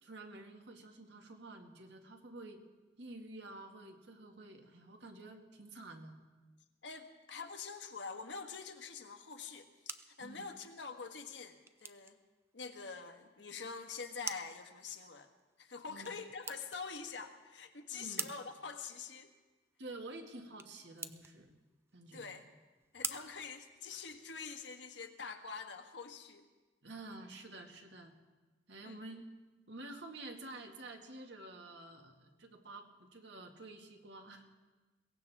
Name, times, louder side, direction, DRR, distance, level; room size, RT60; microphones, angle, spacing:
voice 1, 0.0-2.6 3.0-6.2 10.2-10.5 15.9-16.1 17.9-18.3 19.8-21.5 21.9-22.3 26.8-28.2 28.7-29.3 29.7-34.4, right 2 dB, 70° right, 3 dB, 2.0 m, -50 dB
voice 2, 6.8-12.2 12.5-15.3 15.6-19.3 22.1-22.4 22.9-26.4 28.8-29.0, left 5 dB, 75° left, 6 dB, 1.4 m, -45 dB
sound 1, 9.4-24.4, right 4 dB, 15° right, 0.5 m, -49 dB
22.5 x 18.0 x 3.6 m, 1.2 s
head